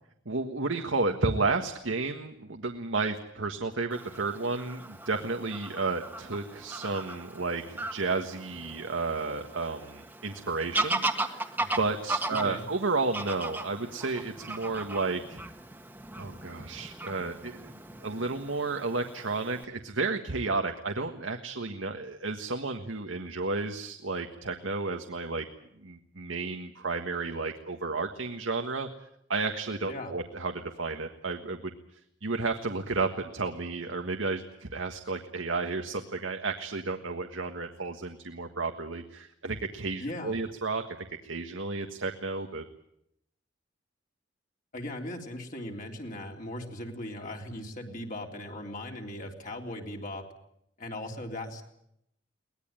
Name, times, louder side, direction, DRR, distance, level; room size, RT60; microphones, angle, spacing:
voice 1, 0.2-15.4 16.2-17.7 18.0-25.4 25.8-28.9 29.3-40.8 41.2-42.6, right 3 dB, 85° right, 5 dB, 1.6 m, -32 dB
Fowl / Bird vocalization bird call bird song, 3.9-19.6, right 2 dB, 10° right, 1.5 m, -37 dB
voice 2, 40.0-40.3 44.7-50.2 50.8-51.6, left 1 dB, 45° left, 1 dB, 3.5 m, -38 dB
23.0 x 19.5 x 9.0 m, 0.77 s
head